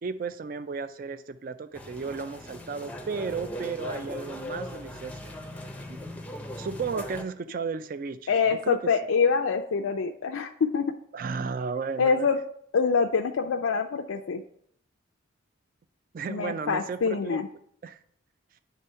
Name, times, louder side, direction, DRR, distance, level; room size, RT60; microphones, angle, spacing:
voice 1, 0.0-5.4 5.9-6.0 6.6-8.3 8.7-8.9 11.1-12.3 16.1-17.4 17.8-18.0, right 5 dB, 45° right, 11 dB, 0.3 m, -34 dB
sound 1, 1.7-7.2, left 1 dB, 5° left, 0.5 m, -39 dB
voice 2, 8.3-10.9 12.0-12.4 12.7-14.4 16.3-17.5, left 5 dB, 90° left, 5 dB, 0.4 m, -25 dB
9.2 x 3.4 x 5.5 m, 0.66 s
head